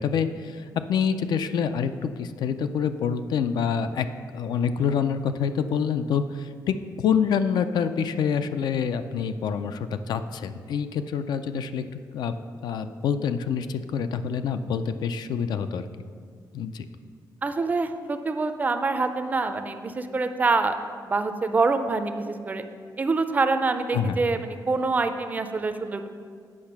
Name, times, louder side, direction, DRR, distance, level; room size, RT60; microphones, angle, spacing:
voice 1, 0.0-4.1 4.3-12.4 12.6-15.8 16.5-16.9 23.9-24.2, left 7 dB, 75° left, 10 dB, 0.4 m, -26 dB
voice 2, 17.4-20.8 21.1-22.6 23.0-26.1, right 3 dB, 25° right, 8 dB, 0.4 m, -25 dB
8.5 x 5.5 x 5.9 m, 2.1 s
wide cardioid pair, 175°, 7 cm